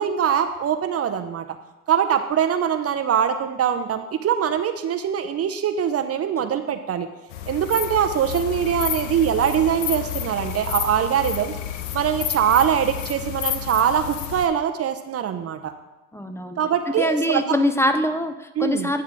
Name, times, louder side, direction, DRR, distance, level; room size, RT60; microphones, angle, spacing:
voice 1, 0.0-1.4 1.9-7.1 7.5-11.6 11.9-15.7 16.6-17.6 18.6-18.9, right 9 dB, 40° right, 8 dB, 0.6 m, -22 dB
sound 1, 7.3-14.5, left 11 dB, 90° left, 0.6 m, -30 dB
voice 2, 16.1-16.6 17.0-19.0, left 1 dB, 5° left, 8 dB, 0.6 m, -23 dB
9.2 x 3.6 x 6.0 m, 1.0 s
hypercardioid pair, 70°, 37 cm